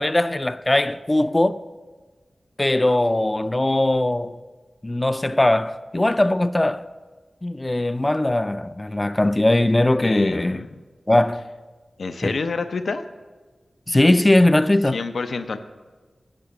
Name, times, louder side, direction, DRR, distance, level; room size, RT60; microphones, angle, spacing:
voice 1, 0.0-1.6 2.6-4.4 4.8-6.9 7.4-10.6 11.1-11.4 12.2-12.3 13.9-15.0, left 1 dB, 20° left, 0.3 m, -20 dB
voice 2, 10.0-10.7 12.0-13.0 14.9-15.6, left 4 dB, 85° left, 0.5 m, -28 dB
8.9 x 5.5 x 7.0 m
wide cardioid pair, 110°, 0 cm